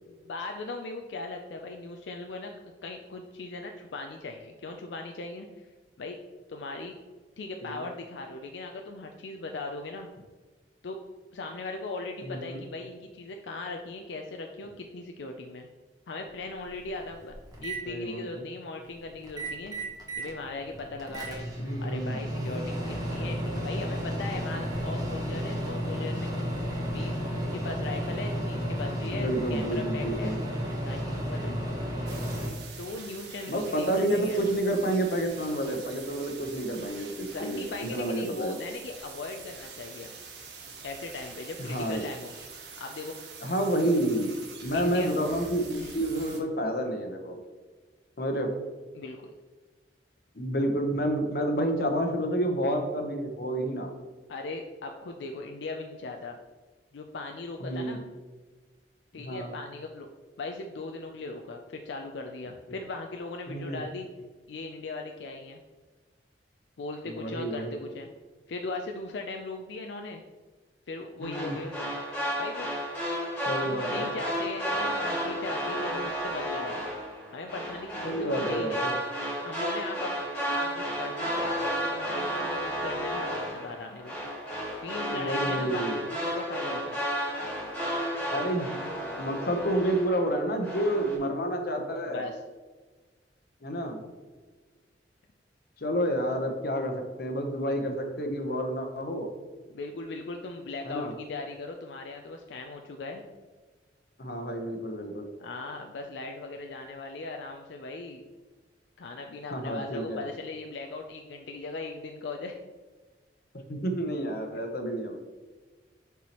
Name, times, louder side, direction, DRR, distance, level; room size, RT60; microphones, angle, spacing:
voice 1, 0.1-5.7 6.0-6.2 6.5-7.0 7.4-10.1 10.8-11.0 11.3-15.7 16.1-19.8 20.2-21.5 21.8-26.3 26.9-27.2 27.5-30.4 30.8-31.6 32.8-34.4 37.3-40.1 40.8-42.3 42.8-43.2 44.7-45.1 45.8-45.9 48.9-49.3 54.3-56.4 56.9-58.0 59.1-60.1 60.4-64.1 64.5-65.6 66.8-68.1 68.5-70.2 70.9-71.7 72.4-72.7 73.5-76.8 77.3-78.9 79.5-80.1 80.4-84.2 84.8-87.0 92.1-92.4 99.7-103.2 105.4-108.2 109.0-112.6 114.5-114.6, left 3 dB, 85° left, 3 dB, 0.5 m, -38 dB
voice 2, 12.3-12.6 17.9-18.4 21.6-22.2 29.1-30.4 33.5-38.6 41.6-42.1 43.4-44.3 44.6-47.4 48.2-48.5 50.3-53.9 57.6-58.0 59.2-59.5 63.5-63.8 67.2-67.7 71.2-71.6 73.5-74.1 78.0-78.9 85.1-86.0 88.3-88.7 89.2-92.3 93.6-94.0 95.8-99.3 100.8-101.1 104.2-105.3 109.5-110.2 113.5-115.1, right 1 dB, 60° left, 4 dB, 0.9 m, -29 dB
Microwave oven, 16.3-16.4 16.8-17.8 19.2-20.3 20.7-32.5, equal, 20° right, 1.1 m, -32 dB
sound 1, 32.1-46.4, right 5 dB, 75° right, 1.0 m, -45 dB
sound 2, 71.2-90.3 90.6-91.2, equal, 5° left, 1.8 m, -32 dB
6.9 x 4.6 x 3.0 m, 1.3 s
head